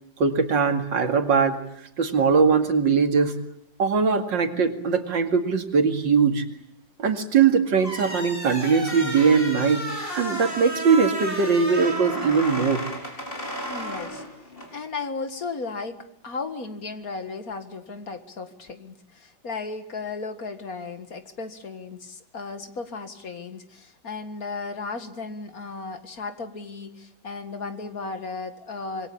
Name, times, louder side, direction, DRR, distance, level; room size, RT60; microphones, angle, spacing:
voice 1, 0.2-1.6 2.0-3.3 3.8-6.4 7.0-9.8 10.1-12.8, right 5 dB, 80° right, 7 dB, 3.0 m, -21 dB
sound 1, 7.8-14.7, right 1 dB, 30° left, 5.4 m, -32 dB
voice 2, 13.7-14.2 14.7-29.1, left 4 dB, 50° left, 9 dB, 2.2 m, -35 dB
26.5 x 22.0 x 8.6 m, 0.71 s
omnidirectional pair, 2.0 m